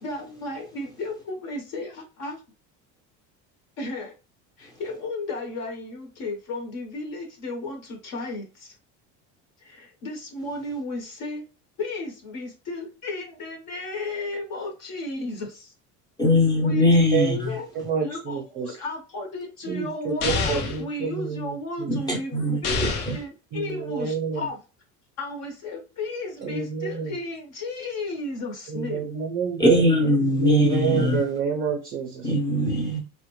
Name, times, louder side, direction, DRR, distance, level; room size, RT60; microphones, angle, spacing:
voice 1, 0.0-2.4 3.8-4.1 4.6-8.7 9.6-11.4 11.8-15.7 16.6-17.7 18.0-24.6 25.2-29.1, left 2 dB, 50° left, 0.9 m, -34 dB
voice 2, 16.2-17.5 21.9-22.6 29.6-31.2 32.2-33.0, left 1 dB, 10° left, 0.6 m, -21 dB
voice 3, 17.7-18.7 19.7-21.9 23.5-24.5 26.4-27.1 28.7-30.1 30.4-32.3, right 5 dB, 30° right, 0.4 m, -28 dB
sound 1, 20.2-20.8 22.6-23.2, left 4 dB, 80° left, 0.8 m, -26 dB
3.5 x 2.2 x 2.9 m
cardioid pair, 175°, 33 cm